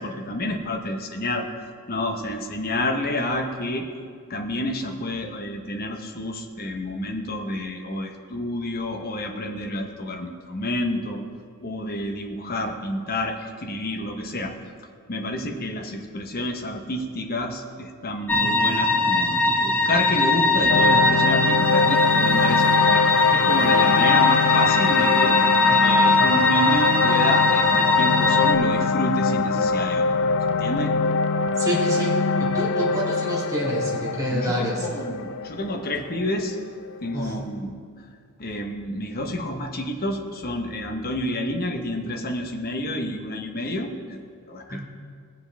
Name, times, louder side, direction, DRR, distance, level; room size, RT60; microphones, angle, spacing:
voice 1, 0.0-1.5 1.9-3.9 4.3-11.2 11.6-14.5 15.1-25.4 25.8-30.1 30.5-30.9 34.3-36.6 37.0-37.7 38.4-44.8, left 1 dB, 45° left, 3 dB, 0.9 m, -29 dB
sound 1, 18.3-28.5, left 2 dB, 10° left, 1.1 m, -20 dB
sound 2, 20.7-36.9, left 4 dB, 60° left, 0.4 m, -23 dB
voice 2, 31.6-34.9 37.1-37.4 44.7-44.8, right 1 dB, 15° right, -6 dB, 2.7 m, -28 dB
18.5 x 7.3 x 3.4 m, 2.2 s
head